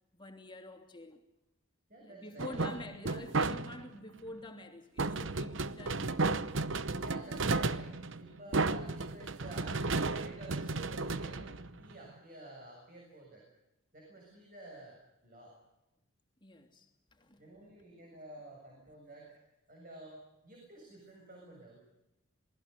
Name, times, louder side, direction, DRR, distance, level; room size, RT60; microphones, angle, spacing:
voice 1, 0.1-1.2 2.0-6.0 16.4-17.5, left 1 dB, 20° left, 2.9 m, -47 dB
voice 2, 1.9-2.7 7.0-13.4 13.9-15.0 15.2-15.6 17.4-19.4 19.7-21.8, right 2 dB, 40° right, 7.3 m, -51 dB
sound 1, 2.4-4.0 5.0-12.1, right 3 dB, 60° right, 0.9 m, -33 dB
27.5 x 20.5 x 6.9 m
head